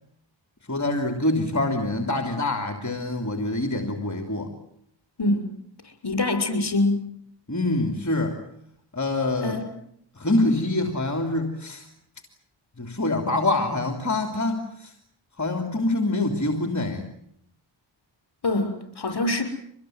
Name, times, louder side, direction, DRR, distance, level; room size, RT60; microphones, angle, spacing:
voice 1, 0.7-4.5 7.5-8.4 8.9-9.6 10.2-11.9 12.8-14.9 15.4-17.1, left 2 dB, 35° left, 6 dB, 3.4 m, -25 dB
voice 2, 5.2-5.5 6.0-7.1 9.4-9.7 18.4-19.4, left 2 dB, 55° left, 6 dB, 6.8 m, -24 dB
25.0 x 20.5 x 9.6 m, 0.71 s
cardioid pair, 40°, 47 cm